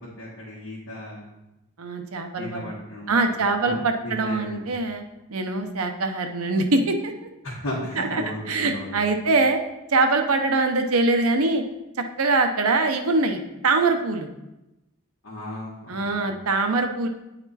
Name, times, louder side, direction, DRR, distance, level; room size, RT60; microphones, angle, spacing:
voice 1, 0.2-1.2 2.4-4.6 7.4-8.9 15.2-16.3, left 1 dB, 60° left, -8 dB, 1.6 m, -35 dB
voice 2, 1.8-2.7 3.1-5.0 5.3-7.1 8.0-9.6 9.9-11.6 12.0-14.3 15.9-17.1, right 3 dB, 90° right, 6 dB, 0.8 m, -23 dB
8.9 x 4.2 x 4.2 m, 0.96 s
head